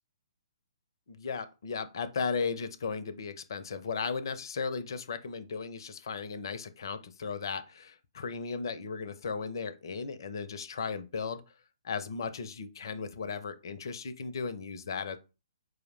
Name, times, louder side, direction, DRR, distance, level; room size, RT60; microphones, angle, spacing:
voice 1, 1.1-11.4 11.8-15.2, left 5 dB, 55° left, 0.5 m, -36 dB
4.7 x 2.0 x 3.1 m
figure-of-eight pair, 125°, 3 cm